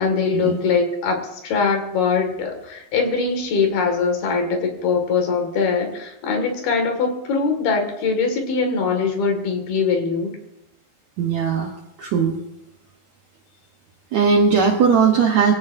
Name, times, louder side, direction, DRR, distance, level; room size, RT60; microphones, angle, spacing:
voice 1, 0.0-10.4, left 5 dB, 70° left, 4 dB, 4.0 m, -22 dB
voice 2, 11.2-11.7 12.0-12.4 14.1-15.5, right 6 dB, 65° right, 1 dB, 1.8 m, -18 dB
23.5 x 16.0 x 2.7 m, 0.85 s
omnidirectional pair, 4.7 m